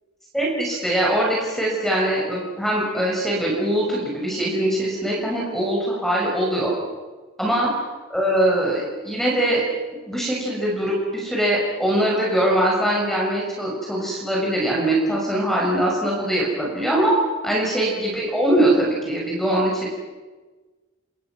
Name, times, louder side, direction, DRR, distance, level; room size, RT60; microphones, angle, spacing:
voice 1, 0.3-6.7 7.4-7.7 8.1-9.6 9.9-17.1 17.4-19.9, right 1 dB, ahead, -3 dB, 6.1 m, -22 dB
29.5 x 26.5 x 6.2 m, 1.3 s
head